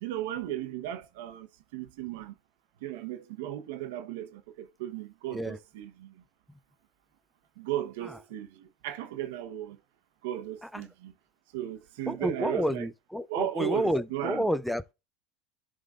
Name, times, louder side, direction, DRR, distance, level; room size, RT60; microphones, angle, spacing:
voice 1, 0.0-1.5 1.7-2.3 2.8-6.1 7.6-9.8 10.2-11.1 11.5-12.9 13.3-14.4, right 12 dB, 80° right, 1.1 m, -36 dB
voice 2, 12.1-14.9, equal, ahead, 0.6 m, -30 dB
11.0 x 3.9 x 2.5 m
supercardioid pair, 105°, 0 cm